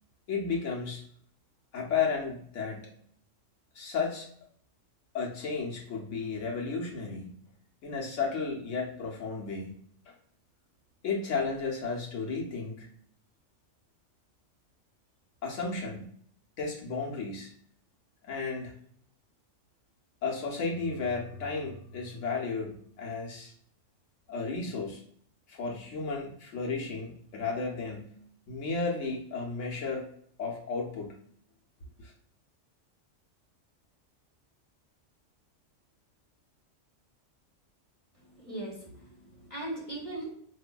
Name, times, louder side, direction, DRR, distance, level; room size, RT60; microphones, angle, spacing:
voice 1, 0.3-1.0 1.7-2.9 3.7-4.3 5.1-7.3 7.8-9.7 10.1-10.2 11.0-12.9 15.4-16.1 16.6-17.5 18.2-18.7 20.2-23.5 24.3-25.0 25.5-28.2 28.5-30.1 30.4-31.2 32.0-32.1, left 4 dB, 75° left, -1 dB, 1.2 m, -33 dB
sound 1, 20.6-23.5, right 1 dB, 50° left, 1.0 m, -50 dB
voice 2, 38.2-40.3, right 2 dB, 30° right, -4 dB, 0.7 m, -39 dB
4.6 x 2.6 x 2.2 m, 0.62 s
omnidirectional pair, 1.3 m